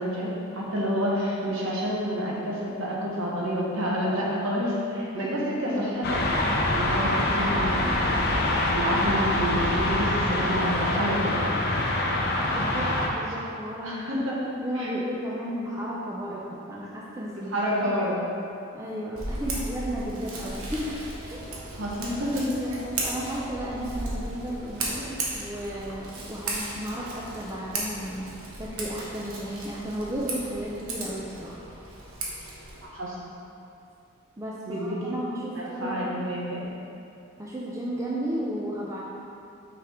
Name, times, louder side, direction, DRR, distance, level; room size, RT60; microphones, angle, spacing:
voice 1, 0.0-6.2 6.7-7.9 8.6-11.3 13.8-14.4 14.8-14.9 17.5-18.2 21.7-22.5 32.9-33.2 34.6-35.1 35.5-36.6, equal, 65° right, -5 dB, 1.2 m, -29 dB
sound 1, 6.0-13.1, left 1 dB, 45° left, 0.6 m, -25 dB
voice 2, 12.5-14.0 14.6-17.7 18.7-21.0 21.3-22.2 22.6-28.3 28.6-31.7 34.4-36.3 37.4-39.0, equal, 15° right, -6 dB, 0.5 m, -34 dB
Scissors, 19.1-32.8, right 2 dB, 80° right, 1.1 m, -36 dB
5.8 x 5.0 x 3.6 m, 2.6 s
head